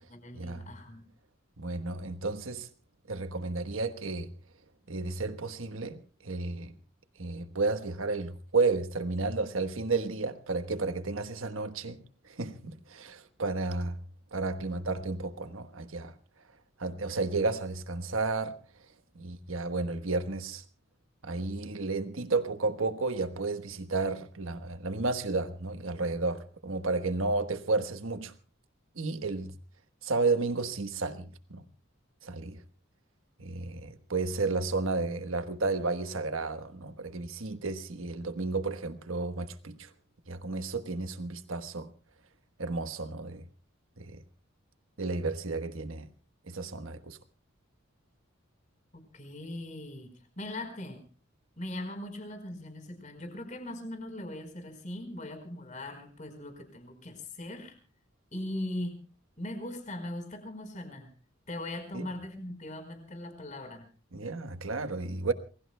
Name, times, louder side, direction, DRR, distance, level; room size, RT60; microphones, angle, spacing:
voice 1, 0.1-1.0 48.9-51.0 51.6-57.8 58.3-59.0 59.4-61.1 61.5-63.9, left 1 dB, 35° left, 4.6 m, -40 dB
voice 2, 1.6-2.7 3.1-4.3 4.9-6.7 7.2-12.0 12.2-14.0 14.3-16.1 16.8-18.6 19.1-20.6 21.2-28.3 28.9-29.5 30.0-31.6 32.2-32.6 33.4-39.9 40.3-41.9 42.6-43.4 44.0-44.2 45.0-46.1 46.5-47.2 61.9-62.1 64.1-65.3, right 3 dB, 75° right, 1.3 m, -32 dB
28.5 x 21.0 x 2.2 m
head